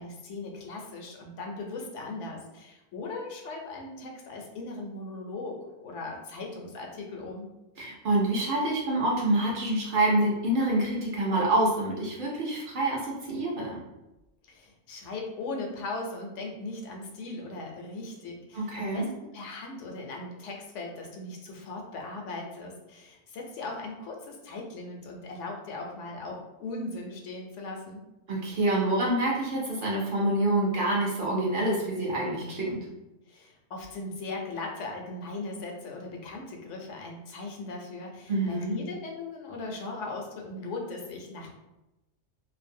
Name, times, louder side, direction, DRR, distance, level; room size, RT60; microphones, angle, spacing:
voice 1, 0.0-7.5 14.5-19.1 19.3-28.0 33.3-41.5, left 3 dB, 85° left, 1 dB, 0.9 m, -38 dB
voice 2, 7.8-13.8 18.5-19.1 28.3-32.8 38.3-38.8, right 1 dB, 55° right, -4 dB, 0.6 m, -27 dB
2.5 x 2.0 x 2.6 m, 0.98 s
omnidirectional pair, 1.2 m